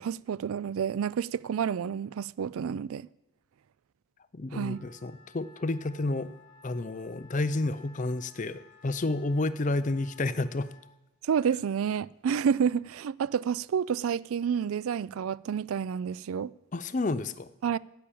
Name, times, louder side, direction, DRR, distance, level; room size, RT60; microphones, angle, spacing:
voice 1, 0.0-3.1 4.5-4.8 11.2-16.5 17.6-17.8, right 7 dB, 70° right, 0.3 m, -29 dB
voice 2, 4.3-6.3 6.6-10.7 16.7-17.5, left 2 dB, 35° left, 0.5 m, -30 dB
Wind instrument woodwind instrument, 4.5-10.9, left 4 dB, 50° right, 5.9 m, -57 dB
10.0 x 8.8 x 8.6 m
head